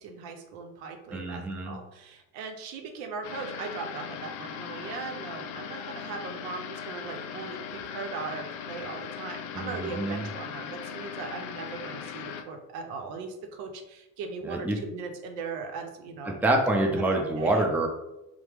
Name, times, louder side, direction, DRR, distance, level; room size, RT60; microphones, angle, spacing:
voice 1, 0.0-16.4 16.8-17.7, right 4 dB, 90° right, 4 dB, 0.6 m, -39 dB
voice 2, 1.1-1.7 9.5-10.2 14.4-14.8 16.2-17.9, right 1 dB, 5° right, 2 dB, 0.5 m, -26 dB
sound 1, 3.2-12.4, left 8 dB, 60° left, 0.5 m, -39 dB
2.8 x 2.0 x 3.3 m, 0.91 s
supercardioid pair, 75°, 41 cm